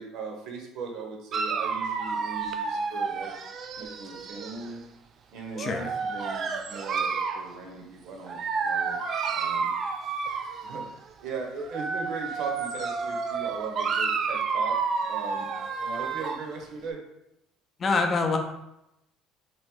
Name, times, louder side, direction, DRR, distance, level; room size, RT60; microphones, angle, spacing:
voice 1, 0.0-3.3 3.8-4.8 5.3-9.0 9.3-9.7 10.6-10.8 11.2-14.7 15.1-15.5 15.8-17.0, right 4 dB, 70° right, 1 dB, 0.8 m, -39 dB
Dog, 1.3-4.7 5.5-7.5 8.3-10.9 11.6-16.5, right 5 dB, 45° right, 0.3 m, -30 dB
voice 2, 5.6-5.9 17.8-18.4, left 4 dB, 35° left, 4 dB, 0.5 m, -25 dB
2.9 x 2.6 x 3.6 m, 0.87 s
cardioid pair, 115°, 0 cm